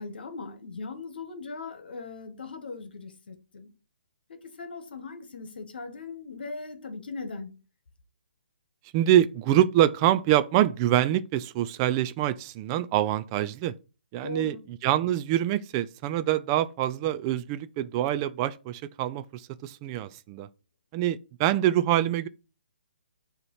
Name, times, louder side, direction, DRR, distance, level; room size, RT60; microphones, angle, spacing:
voice 1, 0.0-3.7 4.3-7.5 14.2-14.6, left 3 dB, 65° left, 1.4 m, -39 dB
voice 2, 8.9-13.7 14.1-20.5 20.9-22.3, right 12 dB, 25° right, 0.3 m, -25 dB
6.7 x 3.0 x 5.5 m
hypercardioid pair, 140°, 6 cm